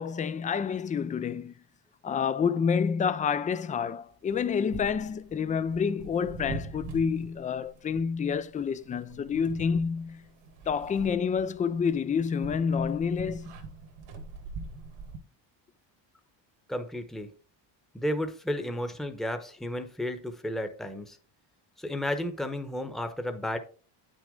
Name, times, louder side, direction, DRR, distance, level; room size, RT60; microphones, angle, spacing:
voice 1, 0.0-1.5 2.0-10.2 10.7-13.6, left 6 dB, 20° left, 0.3 m, -28 dB
sound 1, 4.3-15.2, right 3 dB, 80° right, 2.2 m, -43 dB
voice 2, 16.7-17.3 17.9-21.2 21.8-23.6, left 1 dB, ahead, 0.9 m, -33 dB
9.2 x 6.3 x 3.7 m
cardioid pair, 125°, 47 cm